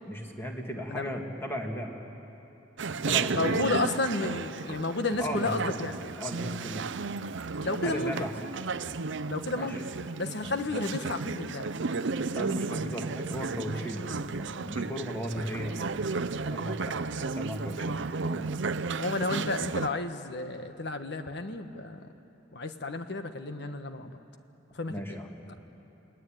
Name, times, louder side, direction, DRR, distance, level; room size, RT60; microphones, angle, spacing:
voice 1, 0.1-1.9 3.0-3.7 5.2-5.9 6.2-6.9 7.6-8.3 9.5-9.8 10.4-10.6 12.3-16.0 16.5-18.0 18.2-18.6 24.9-25.5, equal, 10° left, 1 dB, 2.5 m, -36 dB
Chatter, 2.8-19.9, right 4 dB, 65° right, 0.6 m, -33 dB
voice 2, 3.3-5.9 7.6-8.1 9.3-9.9 10.2-11.7 19.0-22.1 22.5-24.1 24.7-25.2, left 2 dB, 60° left, 8 dB, 1.4 m, -32 dB
29.5 x 20.0 x 9.2 m, 3.0 s
head